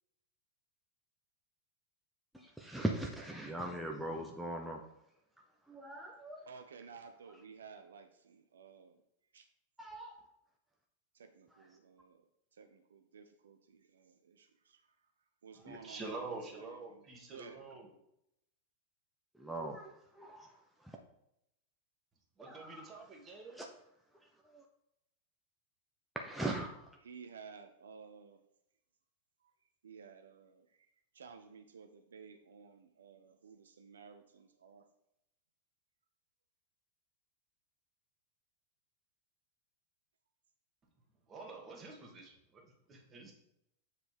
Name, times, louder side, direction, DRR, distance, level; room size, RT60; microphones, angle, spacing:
voice 1, 2.3-4.8 5.7-6.4 9.8-10.2 15.7-15.8 19.3-19.8 20.2-20.3 22.4-23.0 23.5-23.7 24.4-24.6 26.1-26.9, right 1 dB, ahead, 0.7 m, -40 dB
voice 2, 6.4-9.0 9.3-9.5 11.1-15.1 15.4-17.8 27.0-28.4 29.8-30.9 31.1-34.9, right 5 dB, 65° right, 0.5 m, -55 dB
voice 3, 15.6-17.9 22.4-23.6 41.3-43.3, right 3 dB, 25° right, 1.7 m, -47 dB
7.4 x 5.9 x 3.3 m
figure-of-eight pair, 90°, 0 cm